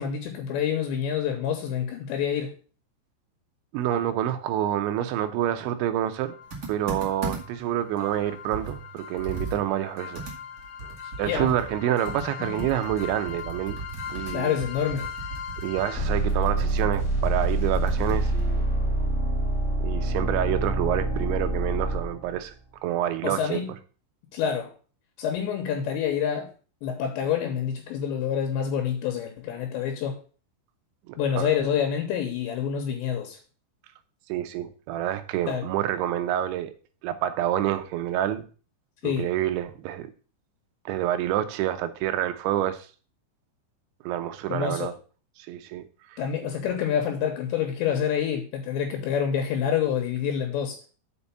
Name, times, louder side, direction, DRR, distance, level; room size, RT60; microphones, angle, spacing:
voice 1, 0.0-2.5 11.2-11.5 12.2-12.6 14.3-15.1 23.2-23.7 24.3-24.7 25.2-26.5 26.8-30.2 31.2-33.4 35.5-35.7 39.0-39.3 44.5-44.9 46.2-50.8, left 8 dB, 75° left, 4 dB, 3.3 m, -27 dB
voice 2, 3.7-6.3 6.7-10.3 11.2-13.8 14.1-14.6 15.6-18.7 19.8-22.5 22.8-23.6 31.1-31.5 34.3-36.7 37.0-38.5 39.0-40.1 40.9-42.9 44.0-44.9 45.4-45.8 46.1-46.2, right 12 dB, 80° right, 9 dB, 3.0 m, -28 dB
sound 1, 6.2-6.3 7.0-7.1 7.4-7.5 8.0-22.4, right 1 dB, 55° left, 0.8 m, -29 dB
Computer keyboard, 6.5-7.7 8.1-8.2 8.5-11.8 12.0-18.5, right 4 dB, 55° right, 1.0 m, -37 dB
6.9 x 5.3 x 7.0 m, 0.38 s
omnidirectional pair, 5.5 m